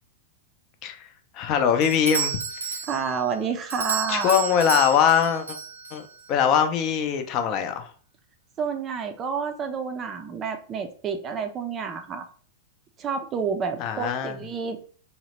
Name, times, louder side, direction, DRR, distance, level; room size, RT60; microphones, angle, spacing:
voice 1, 1.3-2.4 4.1-5.6 5.9-7.9 13.8-14.4, left 8 dB, 40° left, 7 dB, 0.5 m, -22 dB
Doorbell, 1.8-6.3, right 6 dB, 85° right, 0.5 m, -32 dB
voice 2, 2.9-4.3 8.6-12.3 13.0-14.8, right 6 dB, 30° right, 6 dB, 0.4 m, -29 dB
2.8 x 2.0 x 2.9 m, 0.44 s
hypercardioid pair, 100°, 0 cm